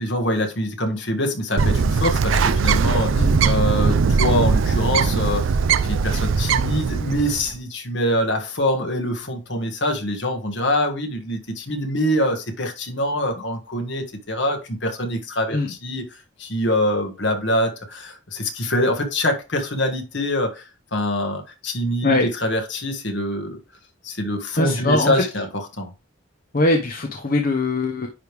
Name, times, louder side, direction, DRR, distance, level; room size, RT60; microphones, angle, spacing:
voice 1, 0.0-5.4 5.8-20.6 20.9-23.6 24.0-25.5 25.8-25.9, left 1 dB, 60° left, 1.7 m, -24 dB
Bird, 1.6-7.5, right 5 dB, 80° right, 0.4 m, -20 dB
voice 2, 24.6-25.2 26.5-28.1, left 2 dB, 45° left, 0.8 m, -21 dB
9.8 x 3.3 x 3.4 m
head